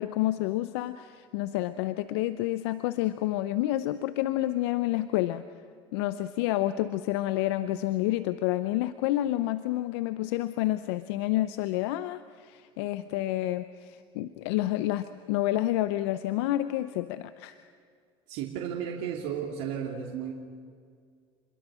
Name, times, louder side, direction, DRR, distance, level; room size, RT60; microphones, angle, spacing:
voice 1, 0.0-5.4 5.9-17.6, left 15 dB, 75° left, 13 dB, 0.7 m, -29 dB
voice 2, 18.3-20.3, right 8 dB, 65° right, -1 dB, 2.8 m, -34 dB
28.5 x 22.0 x 6.3 m, 2.2 s
hypercardioid pair, 85°, 14 cm